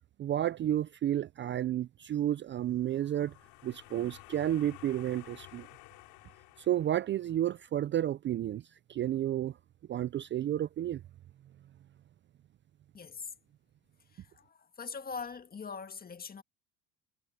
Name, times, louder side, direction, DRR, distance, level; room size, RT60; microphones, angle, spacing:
voice 1, 0.2-3.3 3.6-5.7 6.6-8.6 8.9-9.6 9.9-11.0, right 12 dB, 30° right, 0.5 m, -31 dB
sound 1, 2.7-7.5, left 25 dB, 75° left, 4.0 m, -54 dB
voice 2, 12.9-13.3 14.0-16.4, left 5 dB, 25° left, 1.8 m, -42 dB
supercardioid pair, 100°, 36 cm